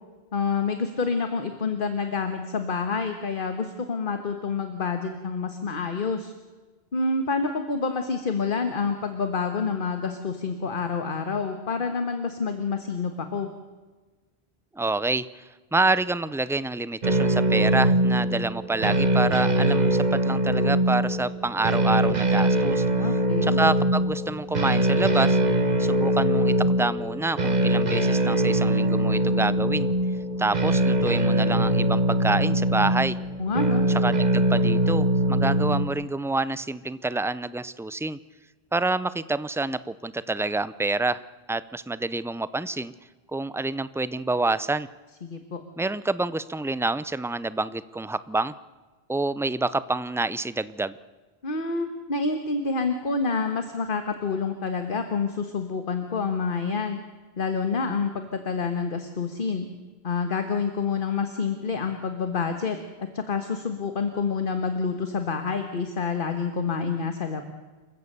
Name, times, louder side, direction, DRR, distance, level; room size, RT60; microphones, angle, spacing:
voice 1, 0.3-6.3 6.9-13.5 22.9-23.6 33.4-33.8 45.2-45.6 51.4-57.0 57.4-59.7 60.0-67.4, left 4 dB, 55° left, 7 dB, 1.5 m, -28 dB
voice 2, 14.7-22.8 23.4-25.4 25.8-29.9 30.4-33.2 33.9-38.2 38.7-41.2 41.5-42.9 43.3-44.9 45.8-48.5 49.1-51.0, right 2 dB, 5° right, 16 dB, 0.3 m, -27 dB
sound 1, 17.0-35.9, right 1 dB, 45° right, 1.4 m, -22 dB
28.0 x 15.5 x 6.8 m, 1.3 s
omnidirectional pair, 1.1 m